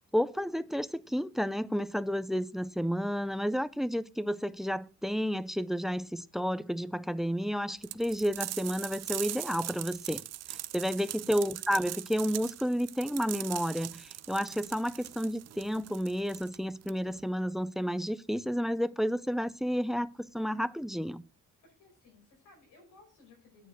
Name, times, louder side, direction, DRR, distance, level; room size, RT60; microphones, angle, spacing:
voice 1, 0.0-10.2 10.5-21.2, equal, ahead, 0.4 m, -31 dB
sound 1, 7.8-17.2, right 14 dB, 60° right, 0.5 m, -41 dB
voice 2, 10.9-11.4 21.6-23.7, left 4 dB, 90° left, 5.1 m, -59 dB
9.1 x 4.6 x 6.4 m
cardioid pair, 90°, 30 cm